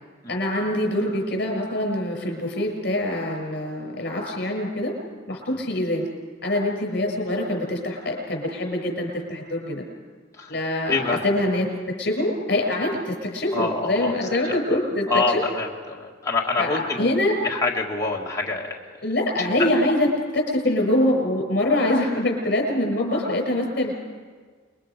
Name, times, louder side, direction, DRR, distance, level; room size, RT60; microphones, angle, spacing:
voice 1, 0.3-4.9 5.3-6.1 6.4-9.8 10.5-11.7 12.0-15.4 16.6-17.3 19.0-24.0, left 1 dB, 60° left, 2 dB, 6.7 m, -24 dB
voice 2, 10.9-11.2 13.5-14.1 14.7-14.8 15.1-17.1 17.4-18.8 19.6-19.8, left 3 dB, 15° left, -3 dB, 1.9 m, -25 dB
28.5 x 22.0 x 5.2 m, 1.5 s
head